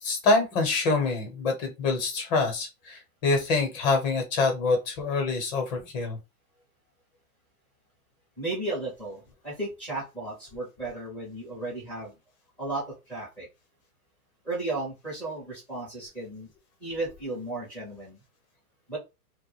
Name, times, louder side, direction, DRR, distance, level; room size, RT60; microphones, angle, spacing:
voice 1, 0.0-6.2, left 3 dB, 30° left, 0.8 m, -26 dB
voice 2, 8.4-12.1 12.6-13.5 14.4-16.5 16.8-18.2 18.9-19.0, right 2 dB, 5° left, 0.4 m, -34 dB
2.2 x 2.2 x 3.0 m
hypercardioid pair, 145°, 47 cm